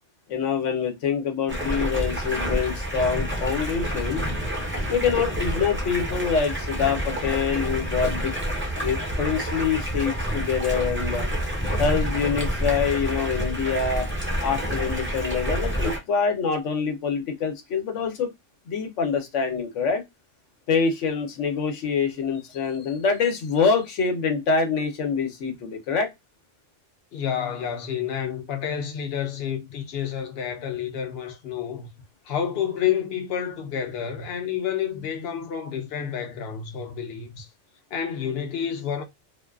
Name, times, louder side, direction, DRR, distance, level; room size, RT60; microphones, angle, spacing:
voice 1, 0.3-4.2 4.9-8.3 8.8-11.3 11.8-14.1 14.4-18.3 18.7-20.0 20.7-26.1, left 5 dB, 85° left, 1.0 m, -25 dB
Stream, 1.5-16.0, equal, 15° right, 0.5 m, -28 dB
voice 2, 27.1-31.9 32.3-37.5 37.9-39.0, left 8 dB, 65° left, 0.8 m, -29 dB
2.5 x 2.3 x 2.3 m
omnidirectional pair, 1.2 m